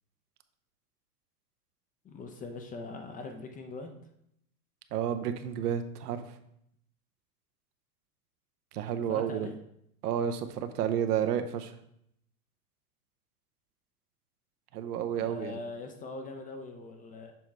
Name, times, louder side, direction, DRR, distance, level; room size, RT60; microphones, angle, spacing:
voice 1, 2.0-4.0 9.1-9.5 15.1-17.3, left 3 dB, 20° left, 4 dB, 0.5 m, -41 dB
voice 2, 4.9-6.2 8.7-9.5 10.0-11.7 14.7-15.6, right 9 dB, 75° right, 8 dB, 0.8 m, -31 dB
7.2 x 3.0 x 4.6 m, 0.74 s
hypercardioid pair, 110°, 46 cm